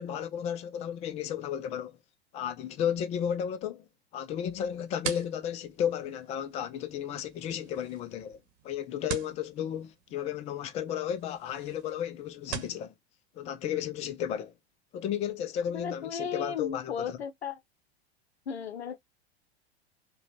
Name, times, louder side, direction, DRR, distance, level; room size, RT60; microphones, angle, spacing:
voice 1, 0.0-2.0 2.3-3.9 4.1-8.4 8.6-12.9 13.4-14.5 14.9-17.2, left 9 dB, 20° left, 0.4 m, -33 dB
sound 1, 4.5-12.8, right 9 dB, 40° right, 1.1 m, -44 dB
voice 2, 15.7-17.6 18.5-19.0, left 6 dB, 75° left, 0.5 m, -35 dB
4.8 x 2.2 x 2.9 m
figure-of-eight pair, 85°, 32 cm